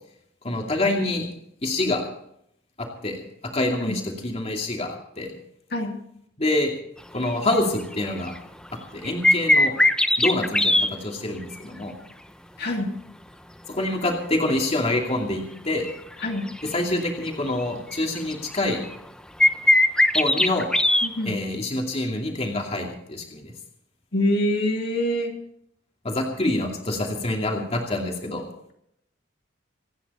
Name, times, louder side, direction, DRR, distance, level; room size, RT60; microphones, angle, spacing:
voice 1, 0.4-1.3 1.6-2.0 2.8-3.2 3.5-5.3 6.4-6.7 7.1-8.3 8.9-9.7 10.2-11.9 13.7-15.9 16.7-18.8 20.1-20.7 21.3-23.5 26.0-28.5, left 2 dB, 35° left, 1 dB, 2.6 m, -26 dB
sound 1, 7.2-7.4 7.8-8.0 8.3-8.4 9.0-10.9 15.0-15.1 15.8-16.7 17.1-17.2 17.6-17.7 17.9-19.0 19.4-21.1, left 1 dB, 5° left, 0.8 m, -19 dB
voice 2, 12.6-12.9 16.2-16.5 21.0-21.4 24.1-25.4, left 1 dB, 60° left, 1 dB, 2.8 m, -25 dB
27.0 x 9.8 x 4.3 m, 0.72 s
head